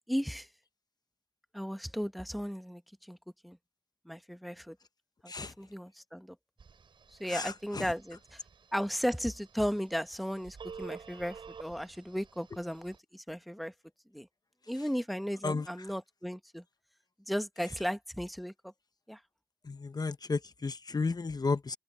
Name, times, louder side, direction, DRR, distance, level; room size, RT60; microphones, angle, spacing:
voice 1, 0.1-0.5 1.5-3.2 3.4-3.6 4.0-4.8 5.2-6.4 7.2-8.4 8.7-13.7 14.1-14.3 14.7-16.6 17.3-18.7 19.1-19.2, equal, ahead, 1.2 m, -35 dB
Telephone, 6.6-13.0, right 6 dB, 85° right, 3.8 m, -51 dB
voice 2, 7.3-7.9 15.4-15.7 17.6-17.8 19.7-21.8, left 4 dB, 55° left, 0.9 m, -33 dB
open air
cardioid pair, 45°, 8 cm